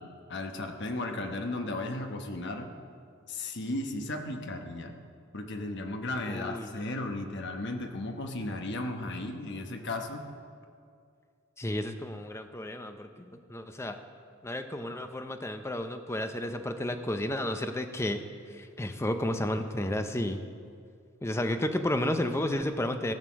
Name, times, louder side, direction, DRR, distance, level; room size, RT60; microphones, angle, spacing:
voice 1, 0.0-2.7 3.3-4.9 5.3-10.3, left 2 dB, 55° left, 5 dB, 1.0 m, -35 dB
voice 2, 6.3-6.8 11.6-14.0 14.4-18.2 18.5-20.4 21.2-23.1, left 1 dB, 15° left, 7 dB, 0.6 m, -32 dB
15.0 x 6.5 x 6.2 m, 2.3 s
head